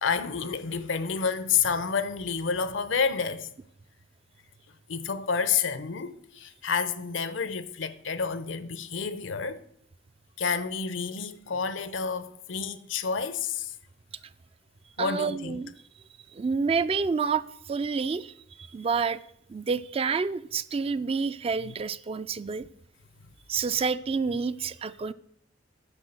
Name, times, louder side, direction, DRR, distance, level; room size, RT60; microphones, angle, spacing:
voice 1, 0.0-3.5 4.9-9.6 10.4-13.7 15.0-15.6 21.6-21.7, left 6 dB, 80° left, 0.7 m, -29 dB
voice 2, 15.0-15.7 16.3-19.2 19.5-22.6 23.5-25.1, right 5 dB, 30° right, 0.3 m, -29 dB
9.8 x 6.3 x 6.6 m
head